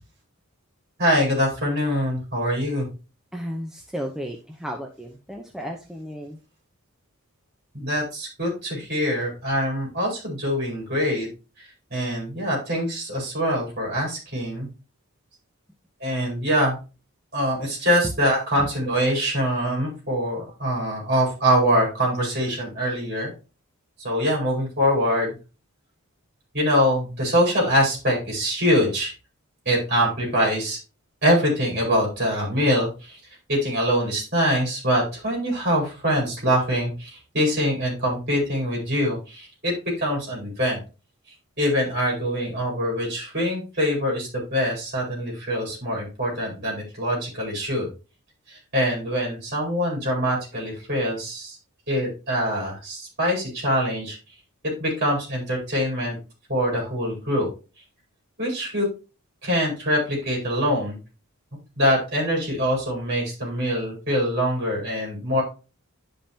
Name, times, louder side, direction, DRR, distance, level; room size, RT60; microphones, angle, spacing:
voice 1, 1.0-2.9 7.7-11.3 11.9-14.7 16.0-16.8 17.3-23.3 24.0-25.3 26.5-29.1 29.6-30.8 31.2-33.2 33.5-40.8 41.6-47.9 48.5-51.6 51.9-54.2 54.8-56.2 56.5-57.5 58.4-58.8 59.4-61.0 61.8-65.4, equal, 45° right, -3 dB, 4.5 m, -24 dB
voice 2, 3.3-6.4, equal, ahead, 1 dB, 0.7 m, -34 dB
10.5 x 5.3 x 2.8 m, 0.31 s
head